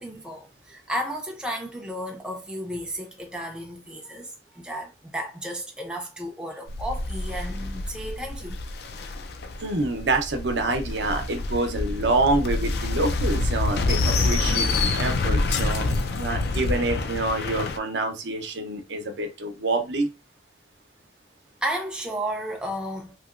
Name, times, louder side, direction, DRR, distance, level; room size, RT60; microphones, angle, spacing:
voice 1, 0.0-8.6 21.6-23.2, equal, 5° right, 0.4 m, -33 dB
sound 1, 6.7-17.8, left 3 dB, 60° left, 0.3 m, -27 dB
voice 2, 9.6-20.1, right 2 dB, 80° right, 0.7 m, -27 dB
2.9 x 2.8 x 2.4 m
head